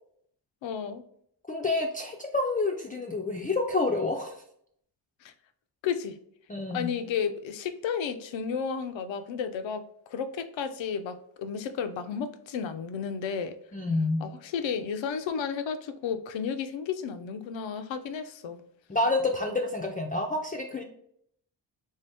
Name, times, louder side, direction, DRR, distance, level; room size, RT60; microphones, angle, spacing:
voice 1, 0.6-1.0 5.2-5.3 5.8-6.2 6.7-9.8 10.1-13.5 14.2-18.6, left 6 dB, 85° left, 9 dB, 0.5 m, -32 dB
voice 2, 1.5-4.3 6.5-6.9 13.7-14.2 18.9-20.8, left 2 dB, 20° left, 1 dB, 0.3 m, -28 dB
3.5 x 2.7 x 3.3 m, 0.69 s
wide cardioid pair, 100°, 44 cm